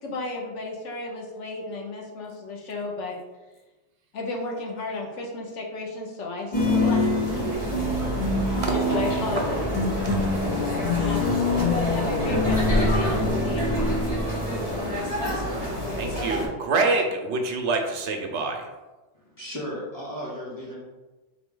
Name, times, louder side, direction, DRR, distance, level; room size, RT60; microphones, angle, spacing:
voice 1, 0.0-3.2 4.1-7.4 8.7-9.7 11.0-14.0, left 3 dB, 80° left, 0 dB, 1.2 m, -33 dB
sound 1, 6.5-16.5, left 1 dB, 35° left, 1.1 m, -25 dB
sound 2, 8.6-8.8 9.4-14.9 15.3-15.5, right 1 dB, 40° right, 0.6 m, -32 dB
voice 2, 16.0-18.7, right 3 dB, 75° right, 4 dB, 0.9 m, -26 dB
voice 3, 19.1-20.8, equal, 15° left, -7 dB, 1.5 m, -35 dB
4.0 x 3.3 x 3.7 m, 1.1 s
omnidirectional pair, 1.2 m